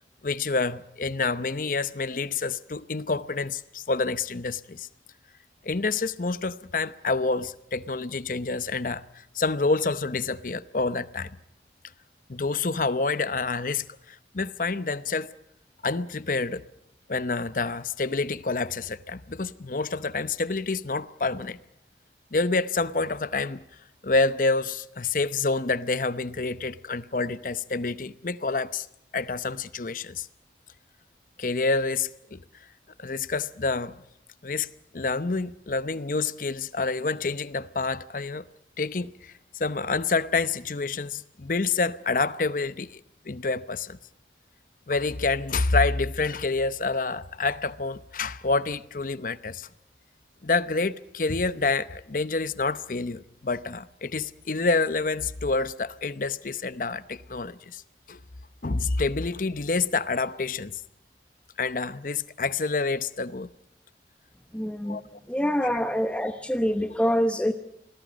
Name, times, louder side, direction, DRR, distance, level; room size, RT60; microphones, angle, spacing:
voice 1, 0.2-4.9 5.6-11.4 12.3-15.3 15.8-16.6 17.1-21.6 22.3-23.6 24.0-28.9 29.1-30.3 31.4-32.4 33.0-34.0 34.4-34.7 34.9-38.4 38.8-39.3 39.6-43.0 43.3-44.0 44.9-49.7 50.4-57.8 58.1-58.2 58.6-60.8 61.6-63.5 64.9-65.0 65.6-65.7, left 3 dB, 50° left, 0.8 m, -28 dB
voice 2, 64.5-65.0 65.3-67.5, equal, 5° left, 0.9 m, -25 dB
28.0 x 20.0 x 5.2 m
head